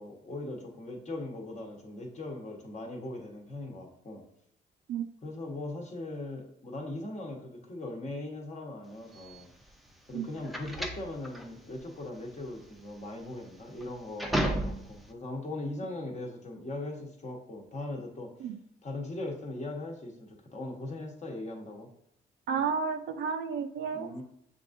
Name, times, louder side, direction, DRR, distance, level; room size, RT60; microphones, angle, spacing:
voice 1, 0.0-4.2 5.2-9.5 10.1-18.3 18.8-21.9 23.9-24.2, left 2 dB, 35° left, 0 dB, 1.1 m, -39 dB
sound 1, 9.1-15.1, right 1 dB, ahead, 0.5 m, -34 dB
voice 2, 22.5-24.1, right 6 dB, 65° right, 7 dB, 0.5 m, -32 dB
6.7 x 2.6 x 2.5 m, 0.73 s
cardioid pair, 90°, 20 cm